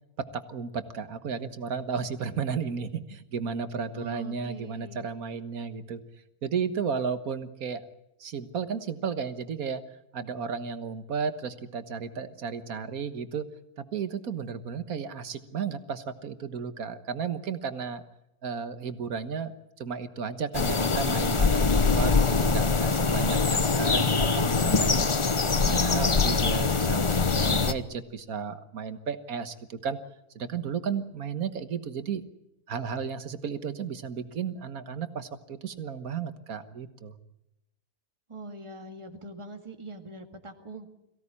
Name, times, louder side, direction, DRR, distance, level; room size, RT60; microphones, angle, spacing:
voice 1, 0.3-6.0 6.4-7.8 8.2-9.8 10.1-13.5 13.9-18.0 18.4-25.1 25.5-30.0 30.4-32.2 32.7-37.2, right 6 dB, 70° right, 10 dB, 1.7 m, -33 dB
voice 2, 3.9-5.1 38.3-41.0, right 2 dB, 20° right, 4 dB, 2.0 m, -43 dB
sound 1, 20.5-27.7, left 4 dB, 30° left, 0.7 m, -23 dB
23.0 x 17.0 x 9.8 m, 0.89 s
omnidirectional pair, 1.6 m